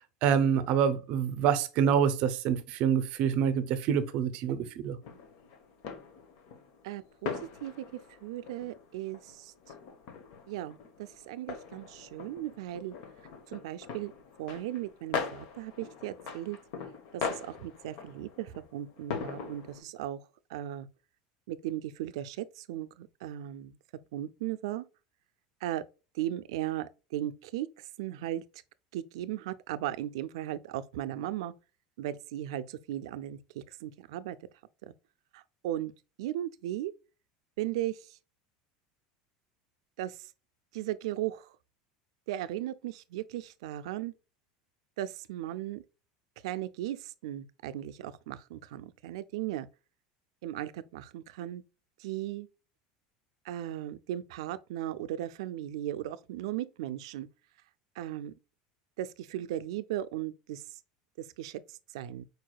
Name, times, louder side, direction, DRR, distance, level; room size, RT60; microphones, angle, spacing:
voice 1, 0.2-5.0, right 8 dB, 45° right, 0.6 m, -26 dB
sound 1, 5.0-19.8, left 6 dB, 50° left, 1.0 m, -41 dB
voice 2, 6.8-7.9 8.2-9.5 10.5-12.9 13.5-14.1 14.4-16.6 17.1-20.2 20.5-20.9 21.5-23.8 24.1-24.8 25.6-25.8 26.1-28.4 28.9-31.5 32.0-34.4 34.8-34.9 35.3-35.9 36.2-36.9 37.6-38.2 40.0-40.3 40.7-41.5 42.3-44.1 45.0-45.8 46.4-49.7 50.4-51.6 52.0-52.5 53.4-57.3 58.0-58.3 59.0-60.6 61.4-62.3, right 13 dB, 85° right, 0.4 m, -37 dB
4.7 x 4.6 x 2.3 m
cardioid pair, 175°, 3 cm